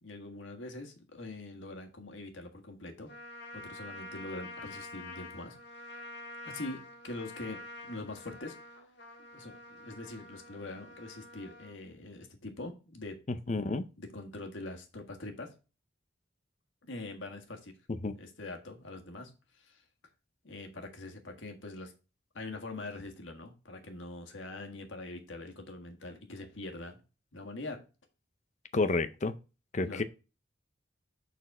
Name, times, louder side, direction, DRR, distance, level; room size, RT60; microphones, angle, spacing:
voice 1, 0.0-3.1 3.5-5.6 5.8-6.1 6.4-8.6 9.3-13.2 14.0-15.5 16.9-17.7 18.2-19.8 20.4-21.9 22.3-27.0 27.3-27.8 29.8-30.0, left 2 dB, 75° left, 1.6 m, -43 dB
Trumpet, 3.1-11.8, left 2 dB, 60° left, 1.6 m, -47 dB
voice 2, 13.5-13.8 17.9-18.2 28.7-29.3 29.7-30.0, left 3 dB, 35° left, 0.5 m, -30 dB
7.0 x 4.2 x 5.3 m
head